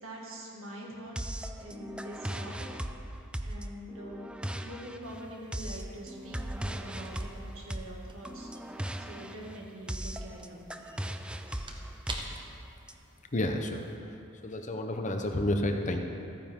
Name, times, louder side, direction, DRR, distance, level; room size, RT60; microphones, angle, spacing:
voice 1, 0.0-1.3 1.6-2.7 3.4-4.3 4.6-11.1, equal, 70° right, -2 dB, 2.1 m, -45 dB
sound 1, 1.2-12.9, right 1 dB, 5° right, 0.3 m, -38 dB
sound 2, 5.0-14.0, right 2 dB, 25° right, 1.0 m, -50 dB
voice 2, 13.3-13.9 14.4-16.0, left 1 dB, 35° left, 4 dB, 0.8 m, -30 dB
14.5 x 9.5 x 3.7 m, 2.8 s
head